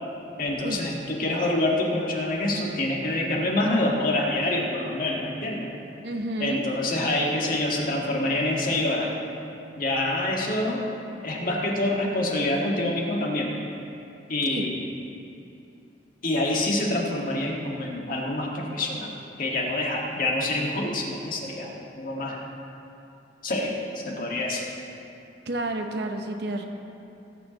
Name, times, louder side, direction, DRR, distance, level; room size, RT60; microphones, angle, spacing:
voice 1, 0.4-5.7 6.4-9.1 9.8-10.9 11.2-13.5 14.3-14.7 16.2-19.1 19.4-22.4 23.4-23.8 24.1-24.6, left 1 dB, 50° left, -2 dB, 1.7 m, -26 dB
voice 2, 6.0-6.6 14.5-14.7 25.5-26.7, right 1 dB, 65° right, 4 dB, 0.9 m, -30 dB
18.5 x 9.2 x 3.0 m, 2.8 s
head